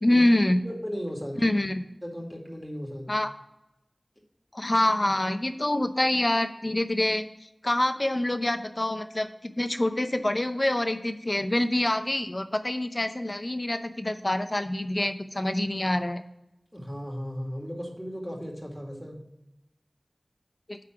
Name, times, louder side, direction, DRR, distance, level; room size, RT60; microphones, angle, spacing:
voice 1, 0.0-0.6 1.4-1.8 3.1-3.3 4.5-7.2 7.6-16.2 20.7-20.8, left 1 dB, 40° left, 9 dB, 0.7 m, -26 dB
voice 2, 0.6-1.4 2.0-3.1 16.7-19.2, equal, ahead, -1 dB, 2.1 m, -36 dB
9.7 x 3.7 x 5.9 m, 0.89 s
wide cardioid pair, 45°, 0 cm